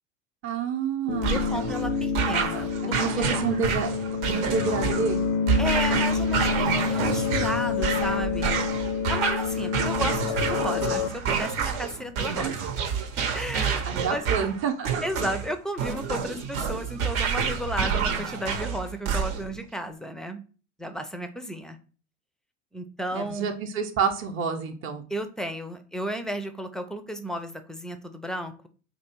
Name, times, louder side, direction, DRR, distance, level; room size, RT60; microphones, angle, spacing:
voice 1, 0.4-1.5 3.0-3.9 4.3-5.2 13.9-15.0 23.1-25.0, right 6 dB, 35° right, 3 dB, 0.7 m, -28 dB
sound 1, 1.1-11.1, left 6 dB, 80° left, 0.5 m, -28 dB
sound 2, 1.2-19.6, right 6 dB, 70° right, 0.8 m, -28 dB
voice 2, 1.3-3.4 5.6-8.6 9.1-12.7 13.3-14.2 15.0-20.4 20.8-21.8 22.7-23.6 25.1-28.7, equal, ahead, 8 dB, 0.4 m, -33 dB
2.9 x 2.6 x 4.4 m, 0.37 s
hypercardioid pair, 75°, 37 cm